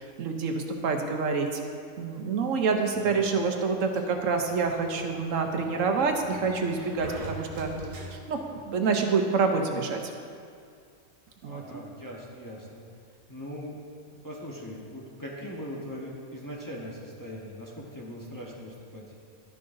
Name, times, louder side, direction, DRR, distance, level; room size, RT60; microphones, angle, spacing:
voice 1, 0.2-1.6 2.0-7.7 8.1-10.0 11.4-11.8, right 4 dB, 75° right, 4 dB, 1.1 m, -27 dB
voice 2, 2.9-3.3 11.4-12.8 13.3-13.8 14.1-19.0, equal, 15° left, -4 dB, 1.0 m, -40 dB
Sliding door, 3.9-8.6, right 2 dB, 35° right, 0.7 m, -44 dB
11.5 x 10.5 x 2.6 m, 2.3 s
omnidirectional pair, 1.4 m